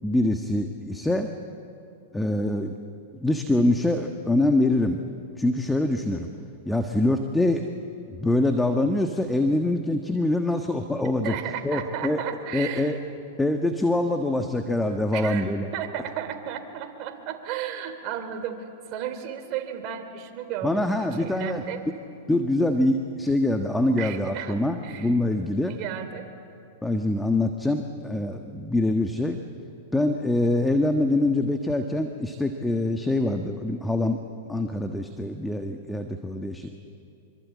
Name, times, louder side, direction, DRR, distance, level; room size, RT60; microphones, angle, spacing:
voice 1, 0.0-1.3 2.1-2.7 3.1-5.0 5.4-6.3 6.7-7.6 8.1-11.3 11.6-12.2 12.5-13.0 13.4-15.7 20.6-21.6 22.3-25.7 26.8-29.4 29.9-34.2 34.5-36.7, left 2 dB, 5° left, 5 dB, 1.3 m, -24 dB
voice 2, 11.2-13.0 15.1-21.8 24.0-25.1 25.6-26.3, right 9 dB, 45° right, 6 dB, 3.4 m, -34 dB
26.0 x 24.5 x 8.5 m, 2.7 s
hypercardioid pair, 120°, 0 cm